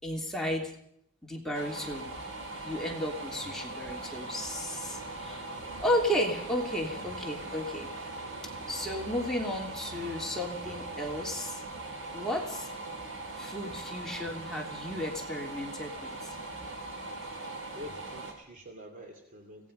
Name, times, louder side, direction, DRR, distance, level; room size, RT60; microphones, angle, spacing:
voice 1, 0.0-0.7 1.2-2.1 2.6-5.5 5.8-7.9 8.7-11.6 12.1-12.7 13.4-16.3, left 1 dB, ahead, -1 dB, 3.3 m, -33 dB
sound 1, 1.5-18.3, right 2 dB, 70° right, 5.8 m, -40 dB
voice 2, 17.7-19.7, left 1 dB, 40° right, 3 dB, 2.7 m, -46 dB
25.5 x 18.5 x 5.5 m, 0.73 s
head